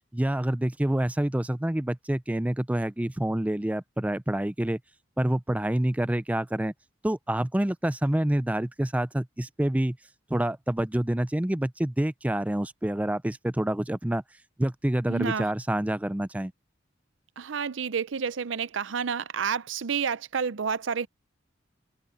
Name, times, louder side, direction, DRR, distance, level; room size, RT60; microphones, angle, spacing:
voice 1, 0.1-4.8 5.2-6.7 7.0-10.0 10.3-14.2 14.6-16.5, right 1 dB, 10° right, 0.4 m, -27 dB
voice 2, 15.1-15.5 17.4-21.1, right 6 dB, 75° right, 0.6 m, -29 dB
head